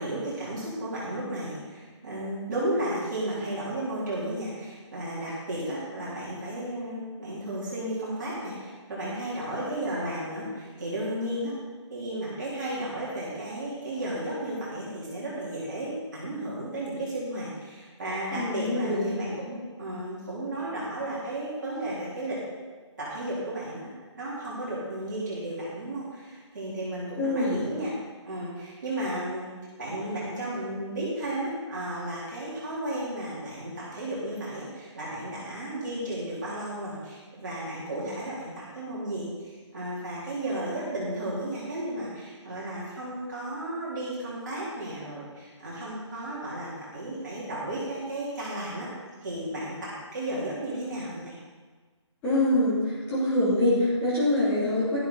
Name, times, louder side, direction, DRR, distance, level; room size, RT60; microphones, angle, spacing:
voice 1, 0.0-11.5 11.9-22.4 23.0-23.9 24.2-27.9 28.2-29.5 29.8-48.9 49.2-51.4, right 1 dB, 40° right, -8 dB, 3.9 m, -33 dB
voice 2, 18.3-19.1 27.2-27.6 52.2-55.0, left 1 dB, 10° left, -11 dB, 2.7 m, -24 dB
12.5 x 11.0 x 4.1 m, 1.4 s
hypercardioid pair, 175°, 15 cm